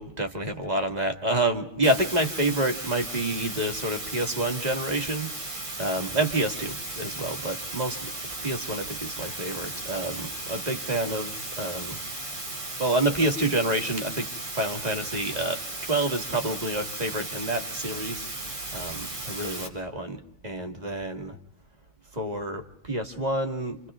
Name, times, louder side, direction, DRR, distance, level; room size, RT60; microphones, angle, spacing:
voice 1, 0.0-5.3 5.8-8.1 8.4-12.0 12.8-18.3 18.7-21.4 22.1-23.8, right 1 dB, 20° right, 5 dB, 1.6 m, -28 dB
sound 1, 1.8-19.7, right 2 dB, 80° right, 5.2 m, -36 dB
29.5 x 27.5 x 3.6 m, 0.78 s
omnidirectional pair, 2.4 m